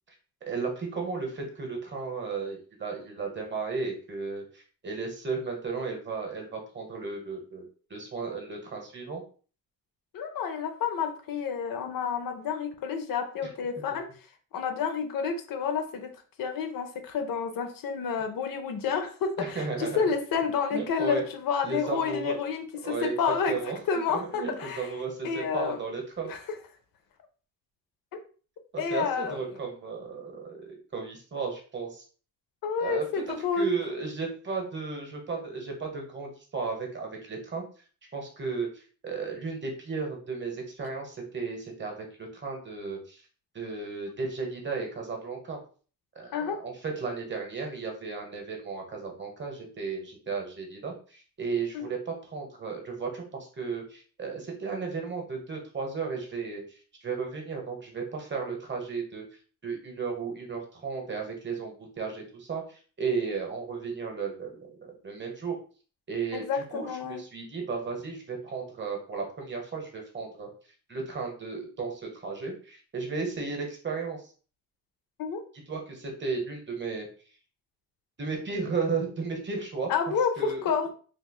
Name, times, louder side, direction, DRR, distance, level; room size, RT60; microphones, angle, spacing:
voice 1, 0.5-7.6 7.9-9.2 13.4-13.5 19.4-20.0 20.7-21.2 21.6-22.4 22.8-23.1 23.5-23.8 24.1-26.3 28.7-32.0 32.8-33.2 33.6-37.6 38.1-43.2 43.5-45.6 46.1-56.6 57.0-59.2 59.6-65.6 66.1-70.5 70.9-74.2 75.7-77.1 78.2-79.9 80.4-80.6, right 4 dB, 35° right, 2 dB, 1.0 m, -34 dB
voice 2, 10.1-14.1 14.5-16.1 16.4-23.6 23.9-24.9 25.2-25.8 26.3-26.4 28.8-29.4 32.6-33.7 46.3-46.6 51.7-51.9 66.3-67.2 75.2-75.4 79.9-80.9, left 6 dB, 85° left, 7 dB, 0.6 m, -29 dB
3.3 x 3.1 x 2.2 m, 0.40 s
wide cardioid pair, 125°, 33 cm